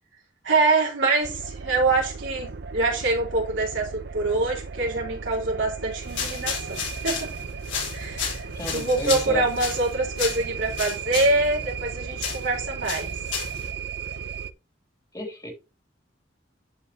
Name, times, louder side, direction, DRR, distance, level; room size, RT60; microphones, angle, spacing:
voice 1, 0.4-7.3 7.9-13.1, right 3 dB, 80° right, 3.9 m, -25 dB
sound 1, 1.2-14.5, right 6 dB, 60° right, 0.6 m, -36 dB
sound 2, 6.0-13.7, left 6 dB, 75° left, 4.2 m, -33 dB
voice 2, 8.5-9.4 15.1-15.5, left 1 dB, 20° left, 2.8 m, -32 dB
12.0 x 4.8 x 2.8 m
head